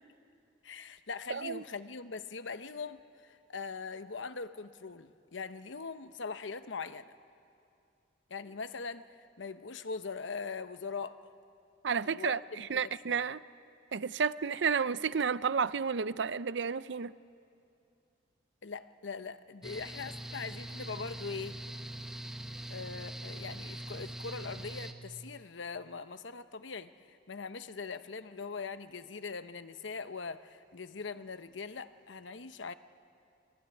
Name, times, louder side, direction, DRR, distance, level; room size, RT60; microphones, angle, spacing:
voice 1, 0.6-7.1 8.3-11.3 12.0-13.2 18.6-21.6 22.7-32.7, left 4 dB, 75° left, 0.9 m, -41 dB
voice 2, 1.3-1.6 11.8-13.4 13.9-17.1, right 6 dB, 65° right, 0.6 m, -31 dB
Mechanical fan, 19.6-24.9, right 1 dB, 5° right, 1.3 m, -42 dB
26.5 x 22.0 x 9.8 m
head